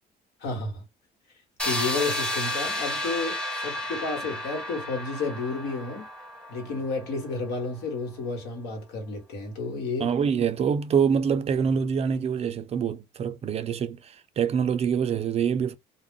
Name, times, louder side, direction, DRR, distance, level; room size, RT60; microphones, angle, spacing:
voice 1, 0.4-0.8 1.6-3.4 3.6-6.1 6.5-10.1, left 3 dB, 80° left, 1.2 m, -31 dB
sound 1, 1.6-7.4, left 1 dB, 5° left, 0.7 m, -32 dB
voice 2, 10.0-15.7, right 7 dB, 40° right, 0.4 m, -25 dB
2.3 x 2.0 x 3.5 m
cardioid pair, 110°, 17 cm